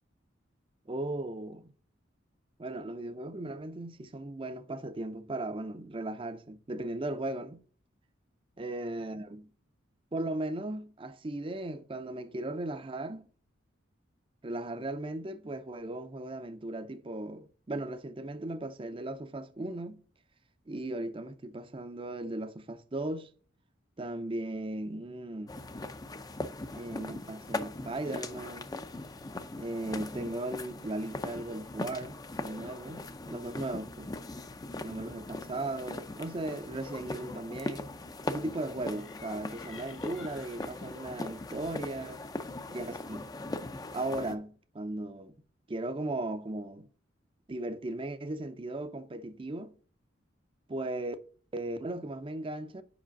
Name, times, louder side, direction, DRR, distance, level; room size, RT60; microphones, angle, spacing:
voice 1, 0.9-1.7 2.6-7.6 8.6-9.5 10.1-13.3 14.4-20.0 20.7-23.3 24.0-25.6 26.7-28.7 29.5-33.0 33.3-34.1 34.8-37.9 38.2-42.2 42.7-43.3 43.9-45.3 45.7-46.9 47.5-49.7 50.7-51.2 51.5-52.8, right 2 dB, 25° right, 0.5 m, -37 dB
sound 1, 25.5-44.3, left 2 dB, 20° left, 0.5 m, -40 dB
sound 2, 38.8-43.6, left 6 dB, 75° left, 1.1 m, -56 dB
5.5 x 5.0 x 5.1 m
head